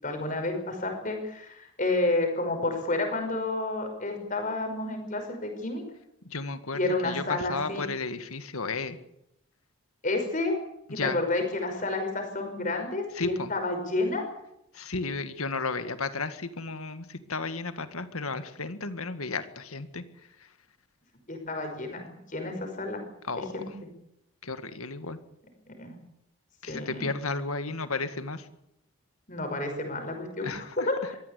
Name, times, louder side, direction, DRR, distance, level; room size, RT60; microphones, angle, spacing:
voice 1, 0.0-5.8 6.7-7.8 10.0-10.5 10.9-14.3 21.3-23.0 23.5-23.7 25.7-25.9 26.7-27.1 29.3-30.5 30.8-31.0, left 2 dB, 35° left, 5 dB, 5.7 m, -30 dB
voice 2, 6.2-9.0 10.9-11.2 13.2-13.5 14.7-20.0 23.3-23.8 24.4-25.2 26.6-28.5 30.4-30.9, left 3 dB, 85° left, 10 dB, 1.9 m, -33 dB
22.5 x 16.0 x 8.5 m, 0.79 s
head